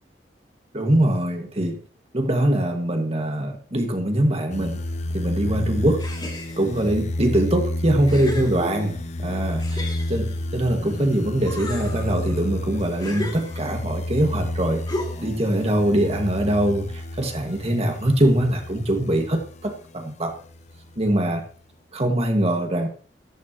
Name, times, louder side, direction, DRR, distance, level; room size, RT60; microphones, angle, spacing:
voice 1, 0.7-1.8 2.1-4.8 5.1-6.0 6.6-14.8 15.2-16.9 17.2-20.3 21.0-21.4 21.9-22.9, right 1 dB, 35° right, 4 dB, 2.0 m, -23 dB
sound 1, 4.5-19.7 20.3-21.3, left 1 dB, 40° left, 0.8 m, -30 dB
sound 2, 6.0-6.9 7.5-7.6 8.1-9.1 9.6-11.0 11.4-13.9 14.9-15.4, left 1 dB, 25° left, 2.8 m, -35 dB
13.5 x 13.0 x 3.1 m, 0.42 s
head